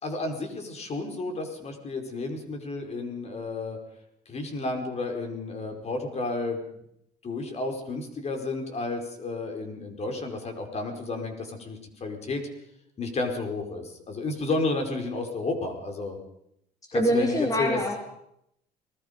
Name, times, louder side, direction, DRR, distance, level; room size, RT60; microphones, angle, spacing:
voice 1, 0.0-3.8 4.3-6.6 7.2-12.4 13.0-16.2 16.9-17.8, left 3 dB, 40° left, 4 dB, 4.8 m, -32 dB
voice 2, 16.9-18.0, equal, 20° left, 2 dB, 3.3 m, -24 dB
30.0 x 20.0 x 5.3 m, 0.76 s
cardioid pair, 110°, 17 cm